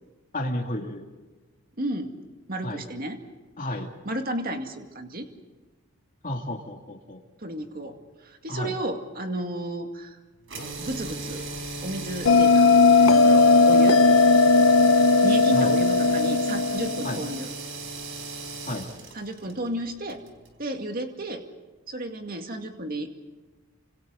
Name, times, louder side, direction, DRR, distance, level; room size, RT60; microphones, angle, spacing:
voice 1, 0.3-1.0 2.6-2.8 3.6-3.9 6.2-7.2 8.5-8.8 15.5-15.8 17.0-17.2 18.7-18.9, left 1 dB, 35° left, 2 dB, 2.7 m, -31 dB
voice 2, 1.8-2.1 2.5-3.2 4.0-5.3 7.4-8.0 8.2-10.2 10.8-11.5 11.8-12.7 13.1-14.0 15.2-17.5 19.1-20.2 20.6-21.4 21.9-23.1, right 1 dB, 40° right, 4 dB, 2.2 m, -33 dB
sound 1, 10.5-20.6, right 3 dB, 60° right, 4.2 m, -37 dB
Bell, 12.3-17.3, left 3 dB, 60° left, 0.7 m, -17 dB
28.5 x 26.5 x 4.1 m, 1.2 s
head